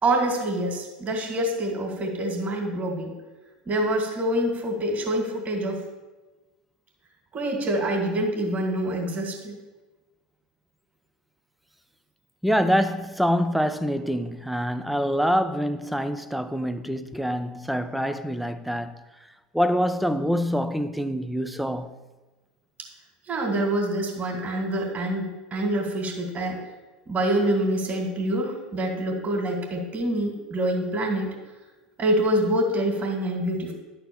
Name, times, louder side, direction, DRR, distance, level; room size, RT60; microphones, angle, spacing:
voice 1, 0.0-3.1 3.7-5.8 7.3-9.5 23.3-26.6 27.1-31.3 32.0-33.7, right 1 dB, 30° right, 2.5 m, -26 dB
voice 2, 12.4-18.9 19.5-21.9, equal, ahead, 0.7 m, -25 dB
11.0 x 4.4 x 7.1 m
hypercardioid pair, 80°, 5 cm